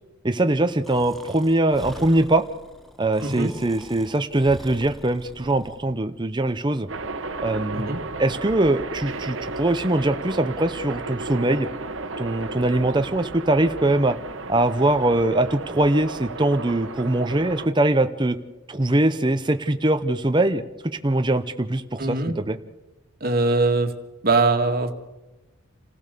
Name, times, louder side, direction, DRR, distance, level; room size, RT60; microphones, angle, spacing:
voice 1, 0.2-2.4 3.0-6.9 7.4-11.7 12.2-14.2 14.5-18.4 18.7-20.6 21.0-22.6, right 1 dB, 20° right, 7 dB, 0.8 m, -22 dB
Breathing, 0.8-5.9, equal, ahead, 1.0 m, -43 dB
voice 2, 3.2-3.5 7.7-8.0 22.0-22.3 23.2-23.9 24.2-24.9, right 3 dB, 45° right, 5 dB, 1.9 m, -21 dB
sound 1, 6.9-17.7, right 3 dB, 70° right, 1.4 m, -34 dB
27.5 x 16.0 x 6.9 m, 1.0 s
head